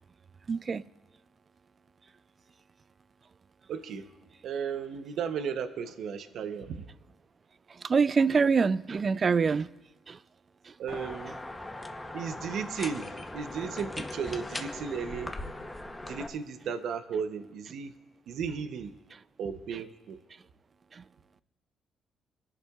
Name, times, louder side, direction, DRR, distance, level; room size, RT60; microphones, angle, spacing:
voice 1, 0.5-0.9 7.7-9.7 10.1-10.2 10.6-10.7 20.9-21.0, right 5 dB, 40° right, 0.3 m, -25 dB
voice 2, 3.7-4.0 4.4-6.9 10.8-11.4 12.1-15.3 16.1-17.9 18.3-18.9 19.4-20.2, right 6 dB, 75° right, 0.8 m, -35 dB
sound 1, 10.9-16.3, left 2 dB, 15° left, 0.8 m, -39 dB
24.0 x 11.0 x 2.4 m
cardioid pair, 90°, 0 cm